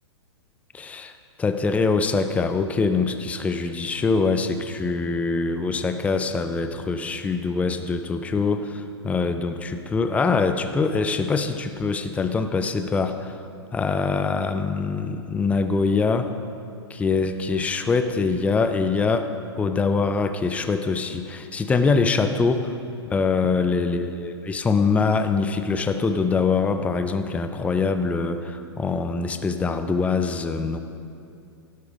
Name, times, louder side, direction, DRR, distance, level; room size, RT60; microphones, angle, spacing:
voice 1, 0.7-1.1 1.4-13.3 13.7-16.3 16.9-22.7 23.1-30.8, left 4 dB, 10° left, 8 dB, 0.5 m, -24 dB
12.0 x 8.3 x 5.1 m, 2.6 s
hypercardioid pair, 120°, 14 cm